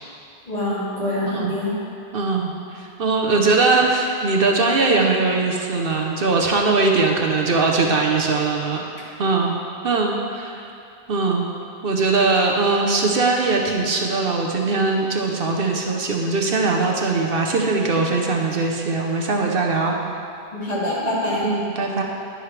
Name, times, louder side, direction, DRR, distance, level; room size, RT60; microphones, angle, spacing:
voice 1, 0.5-1.7 20.5-21.5, left 1 dB, 40° left, -8 dB, 2.5 m, -25 dB
voice 2, 2.1-8.8 9.2-9.5 9.8-10.6 11.1-11.5 11.8-20.0 21.4-22.0, right 3 dB, 65° right, 0 dB, 1.0 m, -21 dB
10.5 x 10.0 x 3.3 m, 2.6 s
omnidirectional pair, 1.0 m